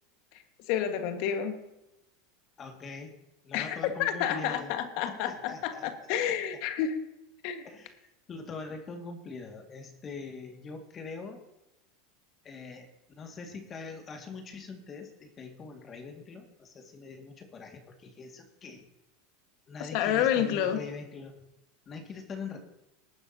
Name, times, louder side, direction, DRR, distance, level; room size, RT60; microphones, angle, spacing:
voice 1, 0.7-1.6 3.5-7.0 7.4-7.7 19.9-20.8, left 9 dB, 60° left, 7 dB, 1.7 m, -29 dB
voice 2, 2.6-3.1 3.4-4.7 5.0-6.1 7.6-11.4 12.4-18.8 19.7-21.3 21.9-22.6, left 4 dB, 30° left, 4 dB, 2.1 m, -43 dB
19.0 x 9.7 x 2.9 m, 0.93 s
hypercardioid pair, 105°, 0 cm